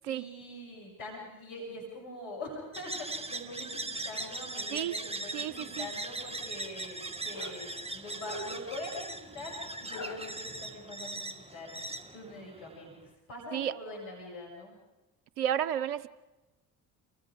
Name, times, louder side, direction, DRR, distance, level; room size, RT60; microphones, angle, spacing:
voice 1, 0.0-11.7 12.1-14.8, left 1 dB, 80° left, -1 dB, 6.8 m, -43 dB
sound 1, 2.7-12.9, right 2 dB, 15° right, 2.0 m, -40 dB
sound 2, 5.3-10.7, left 1 dB, 45° left, 3.7 m, -47 dB
voice 2, 5.3-5.9 13.5-13.7 15.4-16.1, right 10 dB, 85° right, 17 dB, 0.8 m, -32 dB
29.5 x 23.0 x 5.1 m, 1.1 s
hypercardioid pair, 55°, 44 cm